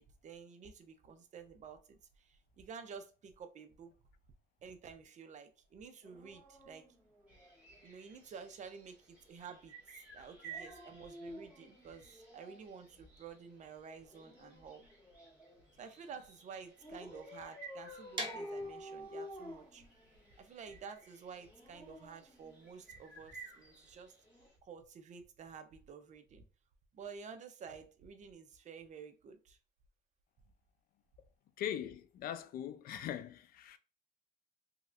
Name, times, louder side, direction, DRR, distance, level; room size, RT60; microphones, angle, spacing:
voice 1, 0.0-3.9 4.6-6.9 7.8-14.8 15.8-19.8 20.4-24.2 24.6-26.4 26.9-29.6, right 6 dB, 45° right, 0.6 m, -51 dB
Dog, 6.0-7.9 10.3-12.7 14.0-15.7 16.8-20.4 21.3-23.0 24.3-24.5, left 1 dB, 10° left, 1.6 m, -51 dB
sound 1, 7.3-24.6, right 5 dB, 10° right, 1.7 m, -57 dB
sound 2, 18.1-23.9, right 1 dB, 25° right, 1.0 m, -47 dB
voice 2, 31.6-33.8, left 10 dB, 60° left, 0.4 m, -41 dB
3.1 x 2.8 x 2.4 m
cardioid pair, 110°, 17 cm